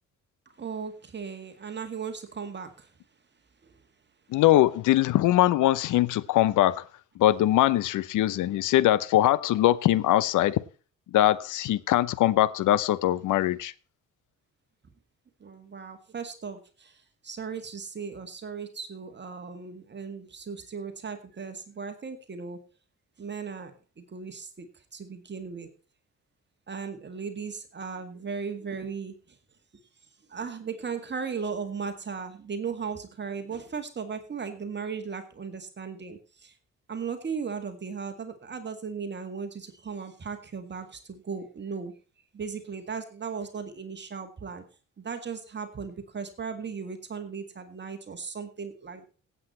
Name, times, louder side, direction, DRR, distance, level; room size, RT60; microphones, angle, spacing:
voice 1, 0.5-2.9 3.6-3.8 15.4-22.6 23.2-23.7 24.0-25.7 26.7-29.4 30.3-36.5 36.9-41.9 42.3-44.6 45.0-49.1, right 6 dB, 35° right, 2.0 m, -37 dB
voice 2, 4.3-6.8 7.2-10.6 11.1-13.7, left 14 dB, 80° left, 0.8 m, -22 dB
16.5 x 8.2 x 4.3 m
cardioid pair, 90°, 30 cm